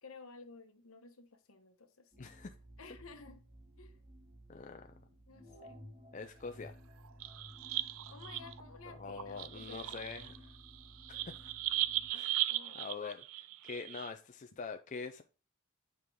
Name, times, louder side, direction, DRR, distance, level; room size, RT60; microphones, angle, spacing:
voice 1, 0.0-2.1 2.8-3.4 3.8-4.0 5.3-5.8 8.1-10.1 12.5-12.8, left 4 dB, 70° left, 1.2 m, -54 dB
sound 1, 2.1-12.1, equal, 20° right, 2.5 m, -55 dB
voice 2, 2.2-2.5 4.5-4.9 6.1-6.8 8.9-10.5 11.1-11.5 12.1-12.4 12.7-15.2, left 5 dB, 35° left, 0.4 m, -45 dB
sound 2, 7.0-8.6 9.1-14.1, right 15 dB, 70° right, 0.4 m, -38 dB
8.2 x 4.7 x 3.5 m
head